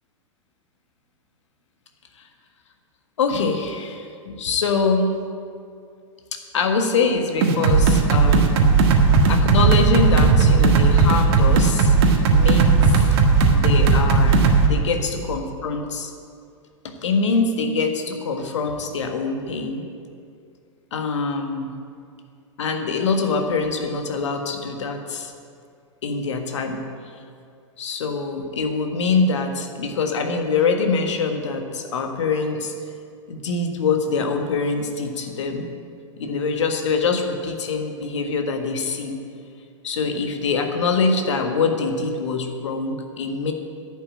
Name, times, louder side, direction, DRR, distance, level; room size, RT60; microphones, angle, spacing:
voice 1, 3.2-5.2 6.3-8.6 9.3-12.0 12.3-13.0 13.5-16.1 16.8-19.9 20.9-21.7 22.6-25.3 26.0-26.8 27.8-32.7 33.3-35.7 36.2-39.2 39.8-43.5, left 4 dB, 65° left, 5 dB, 1.6 m, -24 dB
sound 1, 7.4-14.7, right 4 dB, 50° right, 1.6 m, -16 dB
10.5 x 8.5 x 8.7 m, 2.3 s
figure-of-eight pair, 95°, 17 cm